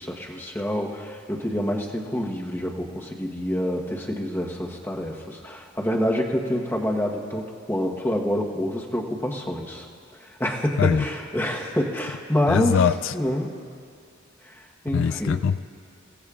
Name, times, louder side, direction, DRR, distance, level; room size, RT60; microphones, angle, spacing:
voice 1, 0.0-9.9 10.2-12.8 13.1-13.6 14.4-15.4, equal, 10° left, 0 dB, 1.1 m, -27 dB
voice 2, 12.5-13.1 14.9-15.6, left 6 dB, 70° left, 13 dB, 0.3 m, -22 dB
29.0 x 16.5 x 2.5 m, 2.3 s
head